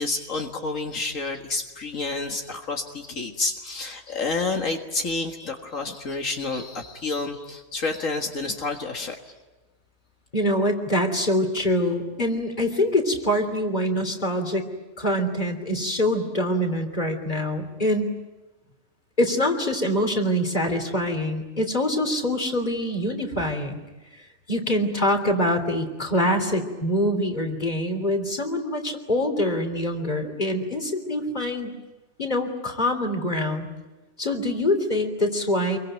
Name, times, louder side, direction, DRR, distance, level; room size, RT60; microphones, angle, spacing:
voice 1, 0.0-9.2, left 3 dB, 80° left, 2 dB, 2.2 m, -29 dB
voice 2, 10.3-14.6 15.0-18.2 19.2-23.8 24.5-31.7 32.2-33.7 34.2-35.8, left 1 dB, 35° left, 5 dB, 3.4 m, -24 dB
26.0 x 23.5 x 9.1 m, 1.1 s
omnidirectional pair, 1.3 m